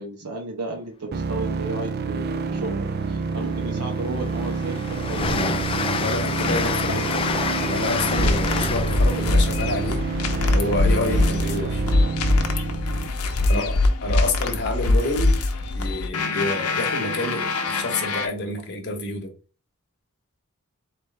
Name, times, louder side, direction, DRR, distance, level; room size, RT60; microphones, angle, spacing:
voice 1, 0.0-5.6 13.4-13.8, right 2 dB, 90° right, 1.0 m, -34 dB
sound 1, 1.1-13.1, right 4 dB, 45° right, 0.4 m, -28 dB
Train, 3.0-3.1 3.6-11.3, left 4 dB, 25° left, 0.3 m, -29 dB
voice 2, 5.9-10.0 10.5-11.8 13.5-15.3 15.7-19.3, left 2 dB, 50° left, 1.0 m, -29 dB
sound 2, 6.2-18.3, left 2 dB, 75° left, 0.7 m, -24 dB
4.2 x 3.1 x 3.3 m
head